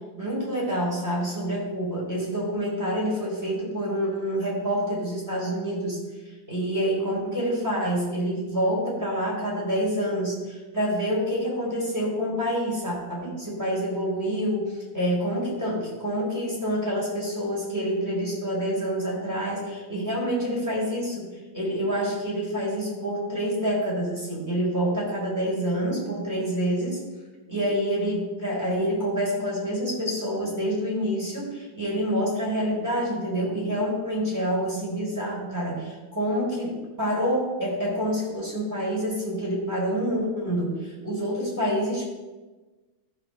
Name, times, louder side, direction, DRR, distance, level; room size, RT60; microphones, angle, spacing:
voice 1, 0.2-6.0 6.5-21.3 21.5-27.0 27.5-42.1, equal, 10° right, -6 dB, 4.1 m, -27 dB
13.5 x 4.5 x 6.7 m, 1.2 s
omnidirectional pair, 2.0 m